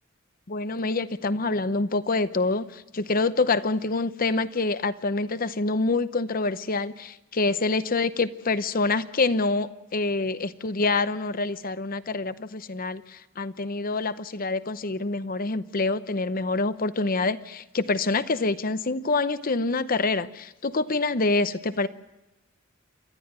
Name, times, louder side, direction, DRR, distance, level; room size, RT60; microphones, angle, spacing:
voice 1, 0.5-21.9, left 3 dB, 45° left, 13 dB, 0.8 m, -26 dB
28.0 x 12.5 x 9.4 m, 1.0 s
head